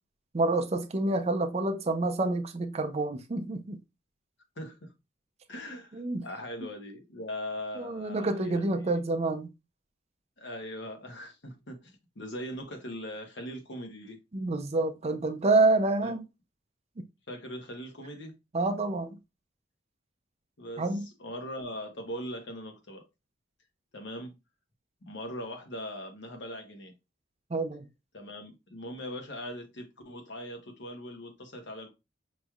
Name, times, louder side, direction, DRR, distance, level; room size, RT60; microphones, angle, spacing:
voice 1, 0.3-3.8 5.9-6.3 7.8-9.5 14.3-16.2 17.0-17.1 18.5-19.2 20.8-21.1 27.5-27.8, right 2 dB, 35° right, 0.5 m, -28 dB
voice 2, 4.6-4.9 5.5-8.8 10.4-14.2 16.0-16.1 17.3-18.3 20.6-23.0 23.9-24.3 25.0-26.9 28.1-31.9, equal, 60° left, 1.1 m, -40 dB
5.2 x 3.1 x 2.3 m
head